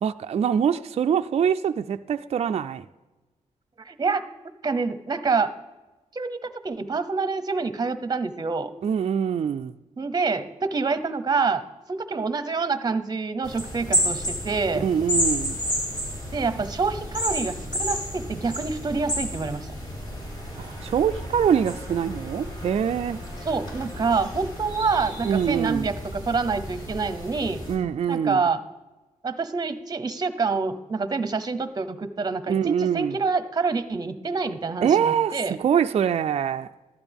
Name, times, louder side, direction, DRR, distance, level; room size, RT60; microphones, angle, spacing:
voice 1, 0.0-2.9 8.8-9.7 14.7-15.6 20.6-23.2 25.2-25.9 27.7-28.4 32.5-33.2 34.8-36.7, right 8 dB, 50° right, 0.4 m, -24 dB
voice 2, 3.8-4.2 4.6-5.5 6.1-8.7 10.0-11.6 11.9-14.9 16.3-19.7 23.4-27.6 28.1-28.6 29.2-35.6, right 4 dB, 30° right, 0.8 m, -27 dB
sound 1, 13.4-27.8, equal, 35° left, 3.8 m, -31 dB
15.0 x 12.0 x 3.5 m
wide cardioid pair, 115°, 13 cm